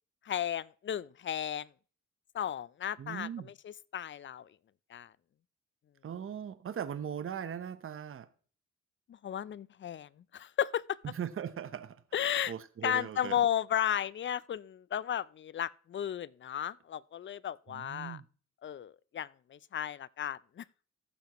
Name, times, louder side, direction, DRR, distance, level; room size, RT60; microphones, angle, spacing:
voice 1, 0.3-1.7 2.3-4.5 4.9-5.1 9.2-11.0 12.1-12.5 12.8-18.2 18.6-20.6, left 10 dB, 40° left, 0.5 m, -34 dB
voice 2, 3.0-3.5 6.0-8.3 11.1-12.0 12.5-13.5 17.7-18.2, right 8 dB, 45° right, 0.9 m, -39 dB
15.0 x 7.0 x 3.0 m
cardioid pair, 70°, 30 cm